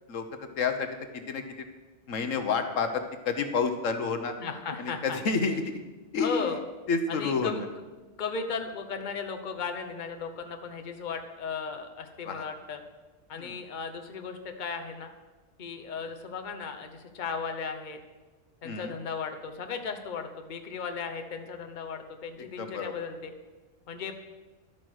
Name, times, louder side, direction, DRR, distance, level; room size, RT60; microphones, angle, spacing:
voice 1, 0.6-1.7 2.1-4.3 4.8-5.6 6.1-6.5 6.9-7.6 12.3-12.4 13.4-13.6 18.6-18.9 22.6-22.9, left 5 dB, 80° left, 8 dB, 1.4 m, -29 dB
voice 2, 4.4-5.2 6.2-6.6 7.1-7.6 8.2-12.8 13.3-15.1 15.6-18.0 18.6-23.3 23.9-24.1, left 5 dB, 40° left, 5 dB, 1.1 m, -36 dB
11.5 x 8.8 x 6.4 m, 1.3 s
omnidirectional pair, 1.3 m